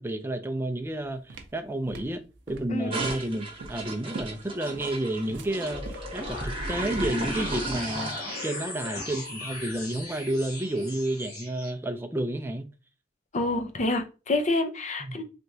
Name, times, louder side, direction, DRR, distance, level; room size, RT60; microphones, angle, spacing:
voice 1, 0.0-12.7 15.0-15.2, right 1 dB, 15° right, 0.4 m, -31 dB
sound 1, 0.8-7.3, right 2 dB, 65° right, 0.5 m, -43 dB
voice 2, 2.7-3.0 13.3-15.2, left 2 dB, 40° left, 0.6 m, -27 dB
sound 2, 2.9-11.1, right 2 dB, 30° right, 1.0 m, -37 dB
sound 3, 5.7-11.7, left 2 dB, 60° left, 1.8 m, -37 dB
3.4 x 3.0 x 2.7 m
head